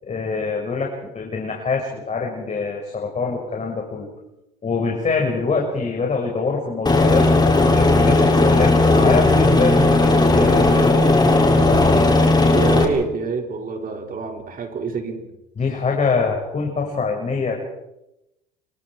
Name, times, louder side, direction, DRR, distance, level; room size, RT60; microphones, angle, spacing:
voice 1, 0.0-4.1 4.6-7.3 7.7-12.1 15.6-17.6, left 4 dB, 35° left, 1 dB, 6.0 m, -24 dB
Aircraft, 6.9-12.9, left 2 dB, 20° left, 6.6 m, -15 dB
voice 2, 12.5-15.3, right 5 dB, 45° right, 2 dB, 5.8 m, -26 dB
29.0 x 25.0 x 4.9 m, 0.91 s
hypercardioid pair, 70°, 20 cm